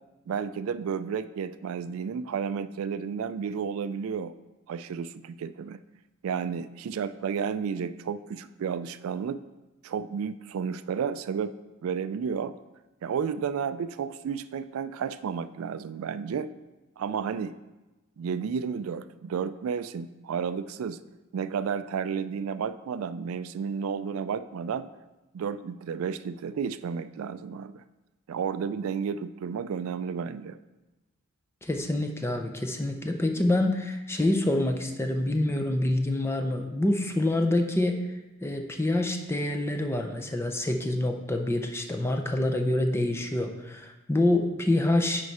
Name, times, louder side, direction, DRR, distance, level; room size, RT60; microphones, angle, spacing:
voice 1, 0.3-4.3 4.7-5.8 6.2-9.4 9.8-11.5 11.8-12.5 13.0-16.5 17.0-17.6 18.2-21.0 21.3-24.9 25.3-27.8 28.3-30.6, right 6 dB, 75° right, 14 dB, 0.3 m, -32 dB
voice 2, 31.6-38.0 38.4-45.2, left 1 dB, 10° left, 4 dB, 0.5 m, -26 dB
9.5 x 4.5 x 4.2 m, 1.1 s
head